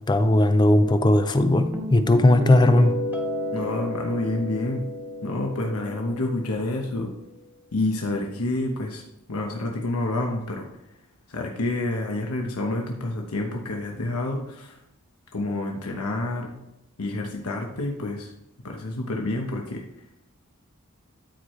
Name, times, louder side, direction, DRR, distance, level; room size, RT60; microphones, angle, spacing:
voice 1, 0.0-3.0, left 1 dB, 20° left, 0.4 m, -18 dB
sound 1, 1.4-7.1, equal, 10° right, 1.2 m, -32 dB
voice 2, 3.5-4.8 5.2-7.1 7.7-9.0 9.3-10.7 11.3-14.8 15.3-16.5 17.0-18.3 18.6-19.8, left 2 dB, 85° left, 1.0 m, -28 dB
13.0 x 4.8 x 3.1 m
head